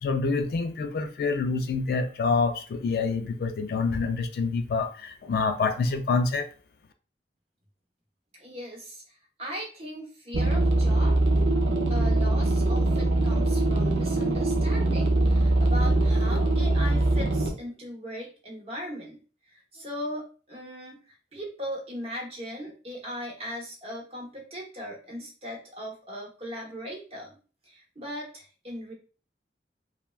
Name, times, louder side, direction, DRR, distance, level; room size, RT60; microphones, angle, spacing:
voice 1, 0.0-6.5, left 4 dB, 60° left, 0.3 m, -27 dB
voice 2, 8.4-11.2 11.9-19.2 19.5-27.4 27.6-28.9, equal, 35° right, 0.8 m, -38 dB
sound 1, 10.3-17.5, right 2 dB, 80° right, 0.5 m, -22 dB
3.2 x 2.1 x 2.3 m
head